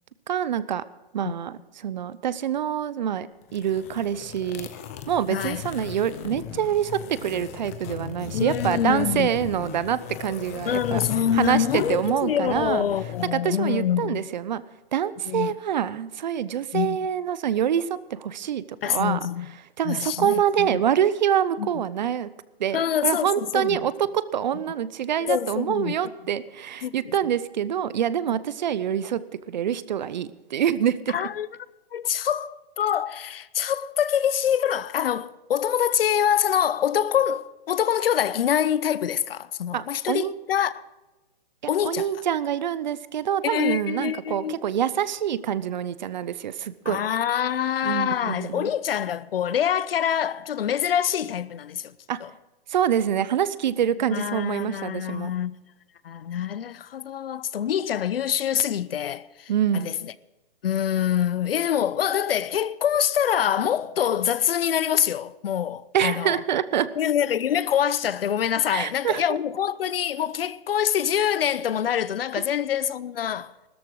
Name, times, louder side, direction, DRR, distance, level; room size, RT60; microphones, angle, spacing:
voice 1, 0.3-0.8 1.1-4.7 5.1-11.0 11.3-12.8 13.3-14.6 14.9-19.2 19.8-22.3 22.6-29.2 29.5-31.1 39.7-40.3 41.8-47.0 47.8-48.7 52.1-52.2 52.7-55.3 59.5-59.9 65.9-66.9 68.7-69.2, right 9 dB, 50° right, 0.7 m, -26 dB
sound 1, 3.4-13.3, left 10 dB, 15° left, 0.5 m, -36 dB
voice 2, 5.3-5.6 8.3-9.3 10.6-14.3 15.3-15.5 16.7-17.0 18.8-19.5 19.8-20.8 21.6-21.7 22.7-23.8 25.2-26.0 26.8-27.1 28.2-28.3 31.1-31.5 31.9-40.7 41.7-42.1 43.4-44.6 46.8-52.0 52.2-52.3 54.1-55.6 56.0-60.1 60.6-66.4 67.0-73.5, left 9 dB, 70° left, 0.7 m, -25 dB
16.0 x 13.5 x 4.8 m
hypercardioid pair, 165°, 30 cm